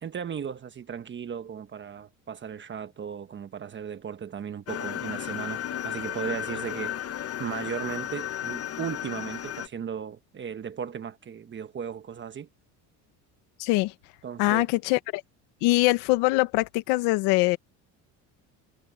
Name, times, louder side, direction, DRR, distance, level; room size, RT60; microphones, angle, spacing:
voice 1, 0.0-6.9 7.4-12.5 14.2-14.7, right 7 dB, 30° right, 1.1 m, -36 dB
sound 1, 4.7-9.7, left 11 dB, 40° left, 1.2 m, -34 dB
voice 2, 13.6-13.9 14.4-15.2 15.6-17.6, left 21 dB, 80° left, 1.4 m, -23 dB
cardioid pair, 125°, 38 cm